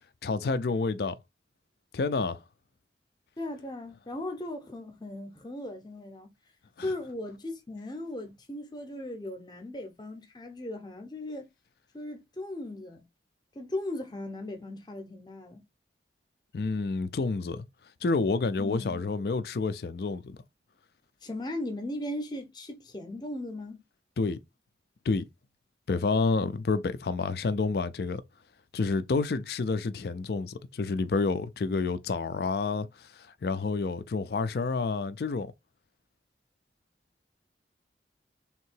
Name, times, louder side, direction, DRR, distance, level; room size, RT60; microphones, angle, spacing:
voice 1, 0.2-1.2 1.9-2.4 6.8-6.9 16.5-17.6 18.0-20.4 24.2-24.4 25.1-25.3 25.9-28.2 28.7-35.5, left 4 dB, 60° left, 0.4 m, -29 dB
voice 2, 3.4-6.3 6.8-11.5 11.9-13.0 13.5-15.6 18.6-19.0 21.2-23.8, left 1 dB, 25° left, 0.7 m, -37 dB
3.6 x 2.8 x 4.4 m
head